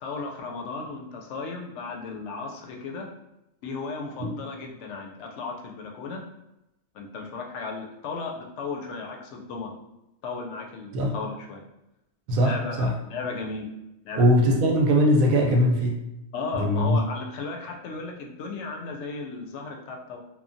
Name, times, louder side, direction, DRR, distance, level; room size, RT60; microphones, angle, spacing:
voice 1, 0.0-3.1 3.6-6.2 6.9-9.7 10.2-11.6 12.4-13.7 14.0-14.5 16.3-20.2, left 4 dB, 65° left, 1 dB, 0.8 m, -35 dB
voice 2, 12.3-13.0 14.2-16.0 16.5-17.0, equal, 85° right, 1 dB, 1.0 m, -21 dB
2.9 x 2.2 x 2.6 m, 0.91 s
omnidirectional pair, 1.4 m